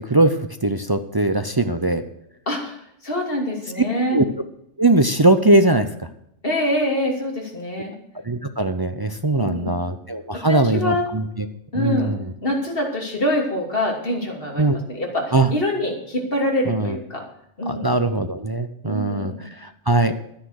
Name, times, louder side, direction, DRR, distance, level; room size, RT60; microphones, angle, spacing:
voice 1, 0.6-2.0 4.1-4.2 4.8-5.9 8.3-11.2 11.7-12.2 14.6-14.8 15.3-15.5 16.7-16.9 17.7-19.3 19.6-20.1, right 2 dB, 30° right, 8 dB, 0.4 m, -20 dB
voice 2, 2.5-4.2 6.4-7.9 9.4-9.8 10.3-11.0 11.7-12.1 12.4-17.2 17.6-17.9 18.8-19.4, left 1 dB, 45° left, 0 dB, 3.0 m, -25 dB
11.5 x 9.8 x 6.4 m, 0.76 s
omnidirectional pair, 1.3 m